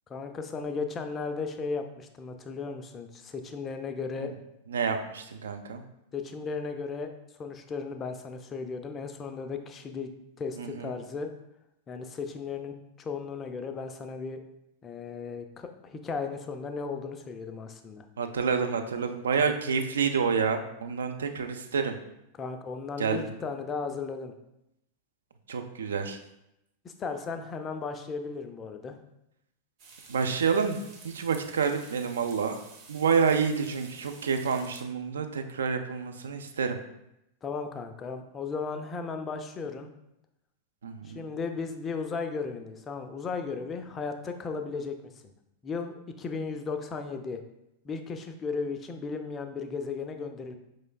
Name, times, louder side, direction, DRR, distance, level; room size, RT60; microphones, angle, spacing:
voice 1, 0.1-4.3 6.1-7.1 7.4-11.3 11.9-14.4 14.8-18.1 22.4-24.3 26.8-29.0 37.4-39.9 41.0-45.1 45.6-47.4 47.8-50.6, left 4 dB, 25° left, 7 dB, 0.4 m, -35 dB
voice 2, 4.7-5.8 10.6-10.9 18.2-22.0 23.0-23.2 25.5-26.2 30.1-32.6 32.9-36.8 40.8-41.2, right 6 dB, 65° right, 6 dB, 0.4 m, -28 dB
sound 1, 29.8-34.8, right 4 dB, 40° right, 0.9 m, -51 dB
5.0 x 3.1 x 2.2 m, 0.84 s
figure-of-eight pair, 90°, 0 cm